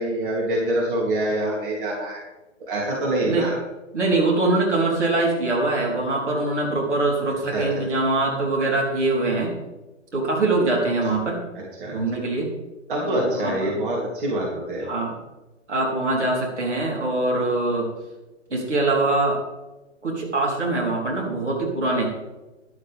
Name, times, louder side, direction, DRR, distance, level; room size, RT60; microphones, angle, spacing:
voice 1, 0.0-2.2 2.6-3.6 7.5-7.6 11.8-12.0 12.9-14.9, right 1 dB, 45° right, -3 dB, 3.2 m, -25 dB
voice 2, 3.9-9.6 10.1-11.4 11.9-12.5 13.0-13.7 14.8-15.1 15.7-17.9 18.5-19.4 20.0-22.1, right 2 dB, 65° right, -2 dB, 4.0 m, -23 dB
13.0 x 11.5 x 3.6 m, 1.1 s
figure-of-eight pair, 125°, 37 cm